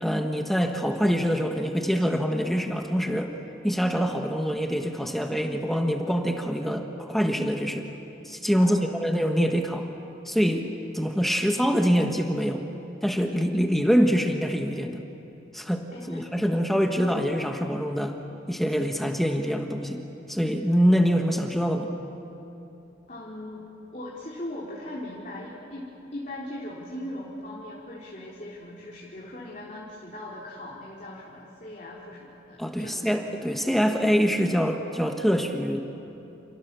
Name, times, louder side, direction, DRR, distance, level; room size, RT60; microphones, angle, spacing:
voice 1, 0.0-3.3 3.6-7.9 8.2-9.9 10.2-10.7 10.9-12.6 13.0-15.0 15.5-18.2 18.5-20.0 20.3-21.9 32.6-35.9, equal, ahead, 3 dB, 1.3 m, -25 dB
voice 2, 8.6-9.0 15.9-16.2 23.1-23.6 23.9-33.3, left 1 dB, 40° left, -5 dB, 3.6 m, -39 dB
29.5 x 29.0 x 6.9 m, 2.9 s
head